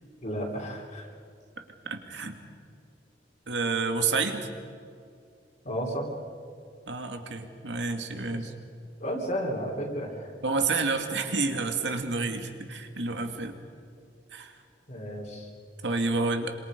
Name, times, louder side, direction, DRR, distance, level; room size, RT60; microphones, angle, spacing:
voice 1, 0.2-1.1 5.6-6.1 8.3-8.5 9.0-10.3 14.9-15.5, equal, 45° left, -4 dB, 3.6 m, -33 dB
voice 2, 1.9-2.4 3.5-4.5 6.9-8.5 10.4-13.6 14.3-14.6 15.8-16.5, right 3 dB, 90° right, 5 dB, 2.3 m, -29 dB
27.5 x 26.5 x 5.3 m, 2.3 s
head